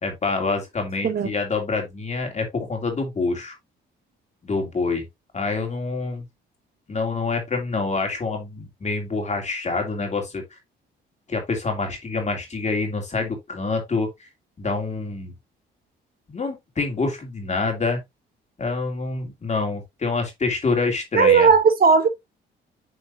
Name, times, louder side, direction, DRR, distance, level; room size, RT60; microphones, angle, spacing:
voice 1, 0.0-3.5 4.4-5.1 5.3-6.2 6.9-10.4 11.3-14.3 14.6-15.3 16.3-18.0 18.6-21.5, left 3 dB, 35° left, 2.9 m, -26 dB
voice 2, 21.1-22.1, right 5 dB, 50° right, 1.2 m, -16 dB
8.6 x 4.4 x 2.7 m
cardioid pair, 90°, 20 cm